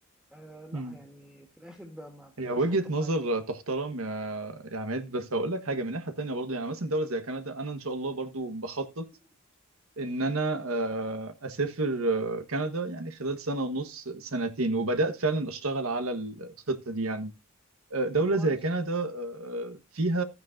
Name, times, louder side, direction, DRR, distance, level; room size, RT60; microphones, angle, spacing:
voice 1, 0.3-3.1 18.4-18.6, equal, 5° right, 1.4 m, -47 dB
voice 2, 2.4-9.1 10.0-17.3 17.9-20.2, right 2 dB, 80° right, 1.4 m, -30 dB
14.5 x 9.4 x 2.6 m
head